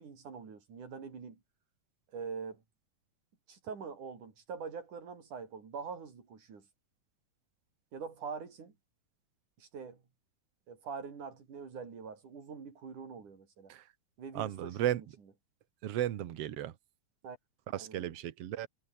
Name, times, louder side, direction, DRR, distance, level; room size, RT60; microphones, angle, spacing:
voice 1, 0.0-1.4 2.1-2.6 3.5-6.7 7.9-8.7 9.6-10.0 10.7-13.7 14.2-14.9 17.2-17.4 17.8-18.1, right 5 dB, 75° right, 5.8 m, -44 dB
voice 2, 14.3-15.0 15.8-16.8 17.7-18.7, right 12 dB, 60° right, 2.0 m, -34 dB
omnidirectional pair, 3.6 m